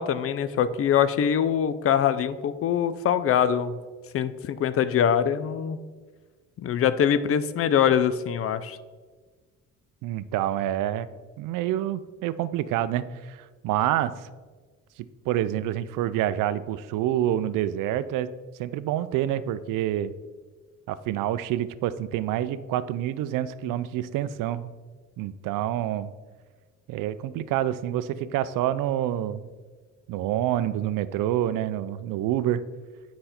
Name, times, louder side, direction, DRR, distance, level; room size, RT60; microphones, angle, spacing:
voice 1, 0.0-3.8 4.1-5.8 6.6-8.8, left 8 dB, 45° left, 14 dB, 0.4 m, -23 dB
voice 2, 10.0-11.1 11.4-14.3 15.0-18.3 18.6-20.1 20.9-24.7 25.2-26.1 26.9-29.5 30.1-32.6, right 12 dB, 80° right, 15 dB, 0.5 m, -27 dB
7.8 x 5.2 x 4.3 m, 1.4 s
cardioid pair, 105°, 32 cm